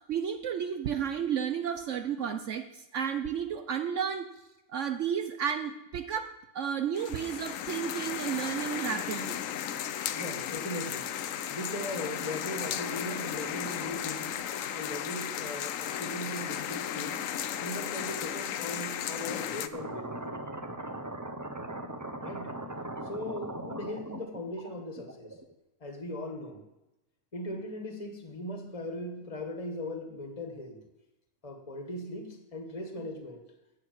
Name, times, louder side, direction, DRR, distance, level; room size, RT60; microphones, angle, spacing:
voice 1, 0.1-4.3 4.7-9.4, right 8 dB, 70° right, 7 dB, 1.1 m, -32 dB
sound 1, 7.0-19.7, left 10 dB, 80° left, 1.1 m, -35 dB
voice 2, 10.1-11.1 11.5-14.5 14.7-17.3 17.6-20.4 22.2-22.6 23.0-25.4 25.8-26.6 27.3-30.8 31.4-33.4, left 1 dB, 25° left, 4 dB, 1.7 m, -39 dB
sound 2, 19.7-25.5, right 1 dB, 15° right, 0.8 m, -39 dB
12.0 x 8.4 x 7.8 m, 0.95 s
omnidirectional pair, 1.4 m